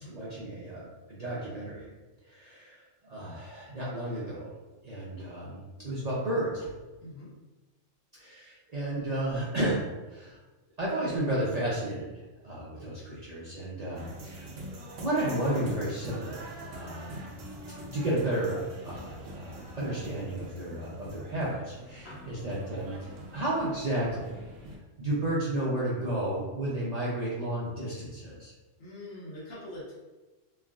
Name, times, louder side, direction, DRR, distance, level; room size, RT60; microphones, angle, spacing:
voice 1, 0.1-1.9 2.3-4.5 4.8-6.7 8.1-9.8 10.1-10.4 10.8-12.1 12.4-14.5 15.0-17.3 17.9-24.4 25.0-28.5, right 1 dB, 55° right, -8 dB, 0.4 m, -32 dB
sound 1, 14.0-24.8, equal, 75° right, 0.9 m, -44 dB
voice 2, 28.8-29.9, left 1 dB, 55° left, -7 dB, 1.1 m, -43 dB
3.3 x 2.3 x 2.3 m, 1.2 s
omnidirectional pair, 1.3 m